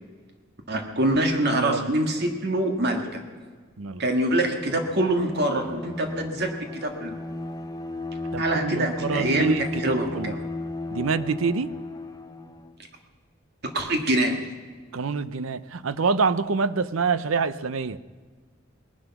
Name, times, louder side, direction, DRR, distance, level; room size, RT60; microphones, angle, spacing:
voice 1, 0.7-3.2 4.0-7.2 8.4-10.4 13.7-14.3, right 1 dB, 55° right, 3 dB, 1.8 m, -25 dB
voice 2, 1.5-1.9 3.8-4.0 8.3-10.3 10.9-11.7 14.9-18.0, right 4 dB, 90° right, 14 dB, 0.7 m, -26 dB
Bowed string instrument, 4.3-12.8, left 2 dB, 20° left, 0.9 m, -35 dB
19.5 x 11.5 x 5.9 m, 1.5 s
head